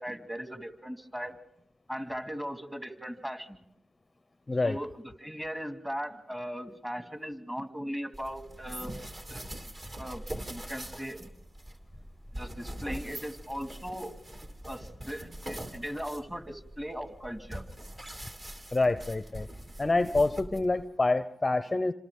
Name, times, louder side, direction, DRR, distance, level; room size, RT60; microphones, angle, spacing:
voice 1, 0.0-1.4 1.9-3.6 4.6-4.9 5.2-8.9 9.3-9.4 10.0-10.2 10.5-11.3 12.3-14.1 14.7-17.6, equal, 10° right, 6 dB, 2.3 m, -38 dB
voice 2, 4.5-4.8 18.7-19.5 19.8-21.9, left 2 dB, 25° left, 12 dB, 0.7 m, -27 dB
sound 1, 8.1-20.9, right 1 dB, 30° right, 2.8 m, -43 dB
28.0 x 26.5 x 3.7 m, 0.78 s
cardioid pair, 60°, 0 cm